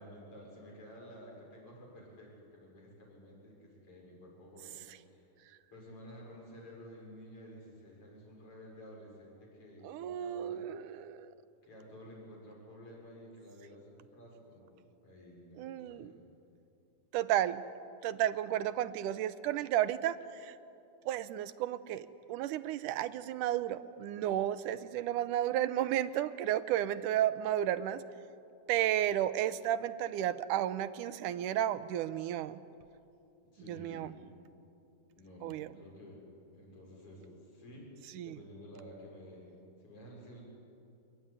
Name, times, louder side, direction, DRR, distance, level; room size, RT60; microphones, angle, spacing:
voice 1, 0.0-5.3 5.7-10.6 11.6-14.8 15.0-16.2 33.5-34.1 35.2-36.2 36.5-40.4, equal, 45° left, -2 dB, 7.5 m, -52 dB
voice 2, 9.8-11.3 15.6-16.1 17.1-17.6 18.0-20.5 21.1-28.0 28.7-32.6 33.7-34.1 35.4-35.7 38.2-38.4, right 12 dB, 80° right, 13 dB, 2.3 m, -33 dB
26.0 x 22.0 x 9.7 m, 2.7 s
omnidirectional pair, 3.7 m